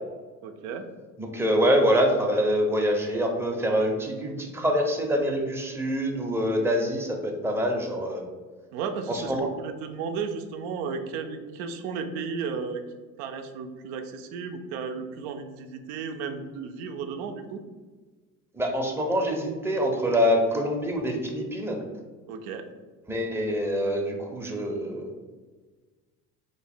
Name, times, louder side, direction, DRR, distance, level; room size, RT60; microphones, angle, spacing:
voice 1, 0.4-0.9 8.7-12.8 13.2-17.6 22.3-22.7, right 5 dB, 70° right, 7 dB, 0.5 m, -34 dB
voice 2, 1.2-8.2 9.1-9.5 18.5-21.8 23.1-25.1, equal, 5° right, 1 dB, 0.6 m, -25 dB
3.1 x 2.0 x 4.2 m, 1.4 s
hypercardioid pair, 70°, 39 cm